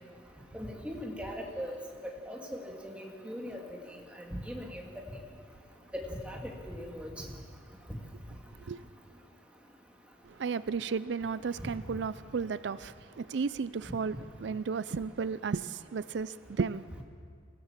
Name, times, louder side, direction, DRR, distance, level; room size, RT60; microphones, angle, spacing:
voice 1, 0.5-1.8 2.3-3.6 4.2-4.8 5.9-7.1 11.6-11.7, equal, 5° right, 2.3 m, -39 dB
voice 2, 10.2-16.8, right 5 dB, 80° right, 0.4 m, -34 dB
24.0 x 16.5 x 7.3 m
head